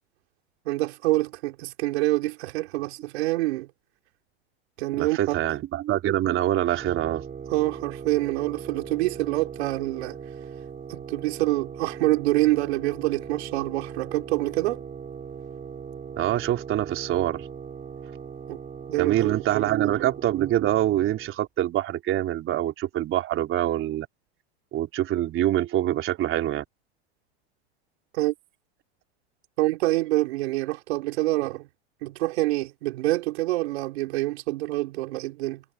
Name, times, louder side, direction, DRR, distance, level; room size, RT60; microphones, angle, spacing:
voice 1, 0.6-3.7 4.8-5.4 7.5-10.2 10.9-14.8 18.5-18.6 18.9-19.9 28.1-28.3 29.6-31.7 32.0-35.6, right 19 dB, 70° right, 3.0 m, -26 dB
voice 2, 4.9-7.3 16.2-17.5 19.0-24.1 24.7-26.6, right 13 dB, 40° right, 3.9 m, -25 dB
sound 1, 6.8-21.3, right 7 dB, 25° right, 5.5 m, -39 dB
hypercardioid pair, 115°, 33 cm